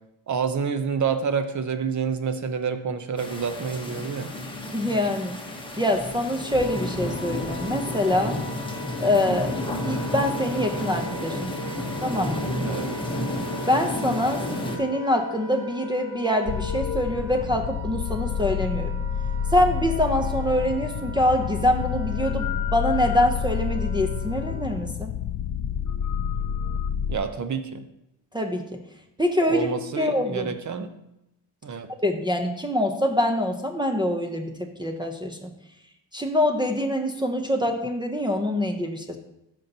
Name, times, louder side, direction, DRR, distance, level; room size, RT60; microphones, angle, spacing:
voice 1, 0.3-4.3 12.6-12.9 27.1-27.8 29.5-30.9 31.6-31.9, right 6 dB, 35° right, 8 dB, 0.9 m, -28 dB
sound 1, 3.2-14.8, left 1 dB, 10° left, 1.1 m, -31 dB
voice 2, 4.7-5.4 5.8-8.4 9.0-11.6 12.0-12.5 13.7-14.4 14.8-19.0 19.5-25.1 28.3-28.8 29.2-29.7 30.0-30.5 32.0-35.5 36.1-39.2, left 1 dB, 10° right, 1 dB, 0.7 m, -25 dB
Wind instrument woodwind instrument, 6.0-24.9, right 2 dB, 70° right, 2.0 m, -40 dB
sound 2, 16.5-27.2, left 8 dB, 45° left, 0.5 m, -29 dB
13.5 x 5.4 x 2.9 m, 0.86 s
cardioid pair, 110°, 48 cm